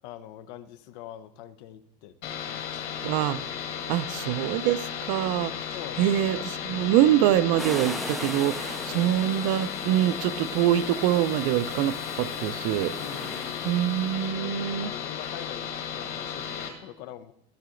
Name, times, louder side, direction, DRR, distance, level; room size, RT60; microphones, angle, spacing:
voice 1, 0.0-3.0 4.0-4.1 5.7-6.1 8.9-9.0 13.0-13.7 14.3-17.3, left 11 dB, 85° left, 12 dB, 0.8 m, -44 dB
sound 1, 2.2-16.7, left 8 dB, 55° left, 2.0 m, -35 dB
voice 2, 3.0-3.4 3.9-4.8 5.1-12.9 13.6-14.9, right 12 dB, 75° right, 14 dB, 0.6 m, -25 dB
sound 2, 7.6-14.1, equal, ahead, 0.4 m, -40 dB
14.0 x 6.7 x 3.8 m, 0.78 s
cardioid pair, 165°, 21 cm